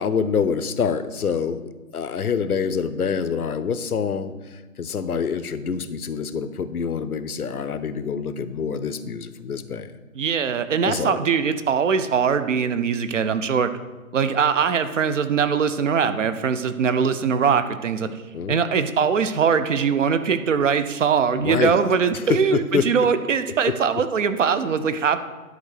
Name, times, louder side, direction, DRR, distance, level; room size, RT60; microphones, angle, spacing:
voice 1, 0.0-9.9 10.8-11.2 18.3-18.6 21.4-21.7 22.1-23.1 23.7-24.0, left 6 dB, 90° left, 13 dB, 0.8 m, -26 dB
voice 2, 10.2-13.7 14.1-18.1 18.5-25.2, right 6 dB, 60° right, 11 dB, 0.8 m, -21 dB
10.5 x 4.0 x 6.5 m, 1.2 s
figure-of-eight pair, 150°, 43 cm